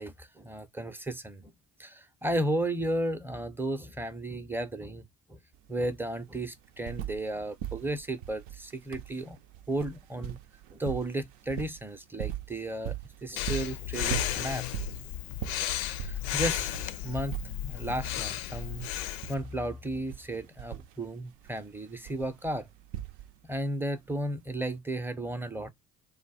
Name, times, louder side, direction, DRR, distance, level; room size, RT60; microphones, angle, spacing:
voice 1, 0.0-1.5 1.8-5.0 5.3-5.4 5.7-9.4 9.7-10.4 10.7-12.9 13.2-14.9 16.0-17.3 17.6-18.9 19.3-22.7 23.5-25.7, right 1 dB, 5° right, 0.6 m, -34 dB
sound 1, 5.5-5.6 5.9-7.3 7.6-23.6 24.6-24.7, right 11 dB, 70° right, 0.6 m, -40 dB
Breathing, 13.4-19.3, left 13 dB, 70° left, 0.5 m, -34 dB
3.1 x 2.2 x 4.0 m
hypercardioid pair, 55°, 44 cm